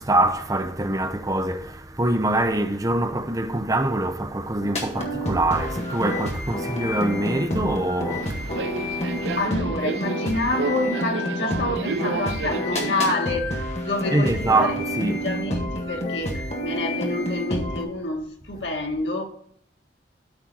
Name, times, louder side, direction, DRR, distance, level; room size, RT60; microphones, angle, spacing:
voice 1, 0.0-9.5 14.1-15.2, right 2 dB, 20° right, 0.6 m, -24 dB
sound 1, 4.6-17.8, left 1 dB, 40° left, 1.7 m, -29 dB
Subway metro underground, 8.1-13.1, right 5 dB, 85° right, 0.4 m, -31 dB
voice 2, 9.4-19.3, left 2 dB, 90° left, 1.7 m, -28 dB
13.0 x 4.4 x 3.9 m
head